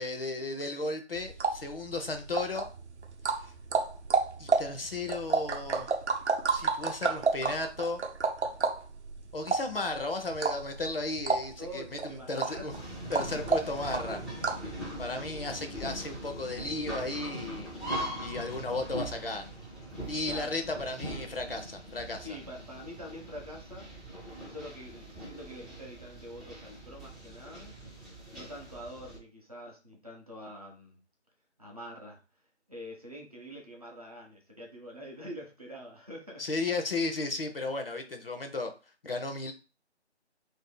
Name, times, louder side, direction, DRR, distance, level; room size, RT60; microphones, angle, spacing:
voice 1, 0.0-2.7 3.4-3.5 4.4-5.9 6.5-8.0 9.3-12.7 13.1-14.6 15.0-19.5 20.1-22.3 36.4-38.7 39.0-39.5, left 2 dB, 55° left, 5 dB, 0.6 m, -34 dB
sound 1, 1.2-14.7, right 4 dB, 75° right, 0.6 m, -31 dB
voice 2, 11.6-13.4 20.3-20.6 22.2-23.9 24.4-27.7 28.3-31.0 31.6-32.2 32.7-36.4, equal, 35° right, -1 dB, 0.7 m, -45 dB
sound 2, 12.7-29.2, right 1 dB, ahead, 0.5 m, -41 dB
2.7 x 2.5 x 3.8 m, 0.32 s
figure-of-eight pair, 170°, 35 cm